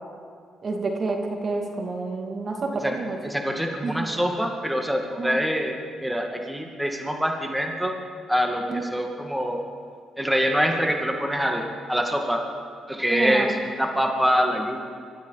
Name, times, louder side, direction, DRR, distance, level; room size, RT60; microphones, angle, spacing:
voice 1, 0.6-3.2 3.8-3.9 5.2-5.4 8.7-8.8 13.1-13.7, right 3 dB, 50° right, 2 dB, 2.5 m, -28 dB
voice 2, 3.2-8.0 8.3-9.6 10.2-12.4 12.9-14.8, equal, 5° right, 2 dB, 2.1 m, -25 dB
25.0 x 13.5 x 4.2 m, 2.2 s
supercardioid pair, 60°, 0 cm